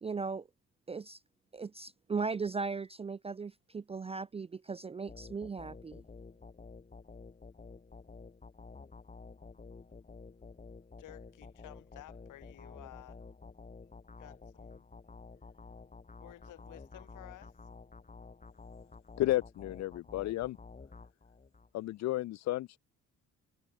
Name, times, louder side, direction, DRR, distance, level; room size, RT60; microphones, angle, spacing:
voice 1, 0.0-0.5 0.9-1.2 1.5-6.0, right 4 dB, 20° right, 0.4 m, -37 dB
sound 1, 5.1-21.7, left 4 dB, 25° left, 4.0 m, -51 dB
voice 2, 11.0-13.2 14.2-14.9 16.2-17.6, left 15 dB, 85° left, 2.2 m, -53 dB
voice 3, 19.2-20.6 21.7-22.8, left 16 dB, 65° left, 0.5 m, -32 dB
cardioid pair, 90°, 30 cm